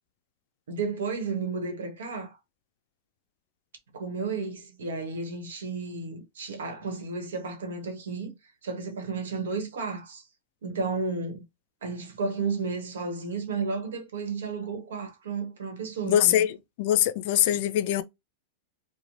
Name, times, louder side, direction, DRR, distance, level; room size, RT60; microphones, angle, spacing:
voice 1, 0.7-2.4 3.9-8.3 8.6-10.2 10.6-11.4 11.8-16.5, right 4 dB, 75° right, 1.0 m, -32 dB
voice 2, 16.0-18.0, left 11 dB, 60° left, 0.4 m, -23 dB
2.9 x 2.1 x 2.6 m
hypercardioid pair, 105°, 0 cm